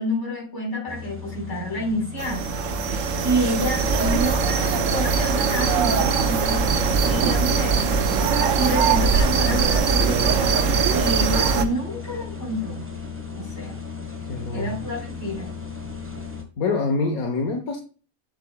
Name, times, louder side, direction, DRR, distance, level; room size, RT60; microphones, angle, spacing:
voice 1, 0.0-2.5 3.2-6.7 7.1-7.8 8.6-12.8 13.4-13.7 14.5-15.5, equal, 50° left, 5.0 m, -28 dB
sound 1, 0.9-16.4, left 5 dB, 10° right, 1.3 m, -36 dB
sound 2, 2.2-11.7, right 5 dB, 65° right, 1.1 m, -21 dB
voice 2, 14.3-14.8 16.6-17.8, left 3 dB, 80° left, 1.6 m, -25 dB
8.2 x 7.9 x 2.3 m
omnidirectional pair, 1.5 m